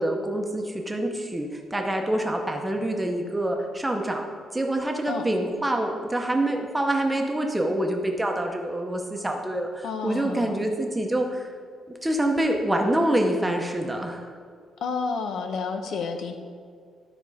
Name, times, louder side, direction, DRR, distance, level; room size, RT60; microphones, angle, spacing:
voice 1, 0.0-11.5 12.0-14.3, right 1 dB, 10° right, 2 dB, 0.8 m, -26 dB
voice 2, 9.8-10.6 14.8-16.3, left 5 dB, 70° left, 6 dB, 0.8 m, -30 dB
13.0 x 4.3 x 4.9 m, 2.1 s
cardioid pair, 160°, 0 cm